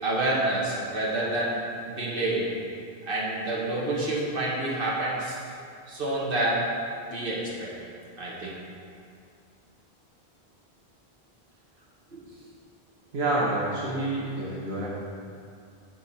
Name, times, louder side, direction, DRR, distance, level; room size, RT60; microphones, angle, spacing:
voice 1, 0.0-1.6 1.8-2.5 3.1-5.4 5.9-6.7 7.1-7.7 8.2-8.6 12.1-12.2, right 2 dB, 60° right, -5 dB, 1.6 m, -28 dB
voice 2, 13.1-14.9, right 2 dB, 85° right, -6 dB, 1.3 m, -28 dB
8.7 x 4.6 x 4.2 m, 2.4 s
omnidirectional pair, 1.0 m